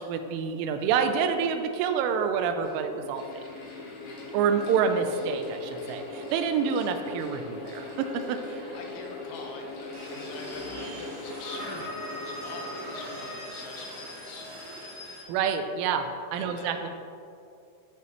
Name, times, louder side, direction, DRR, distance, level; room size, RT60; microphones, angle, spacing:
voice 1, 0.0-3.2 4.3-8.7 15.3-16.9, right 6 dB, 85° right, 7 dB, 3.0 m, -27 dB
Mechanical fan, 2.3-14.9, left 3 dB, 55° left, 2.6 m, -41 dB
voice 2, 8.6-14.5 16.4-16.9, left 3 dB, 75° left, 1 dB, 3.1 m, -44 dB
sound 1, 9.9-15.2, equal, 50° right, 1.1 m, -40 dB
15.5 x 5.9 x 3.0 m, 2.5 s
omnidirectional pair, 5.8 m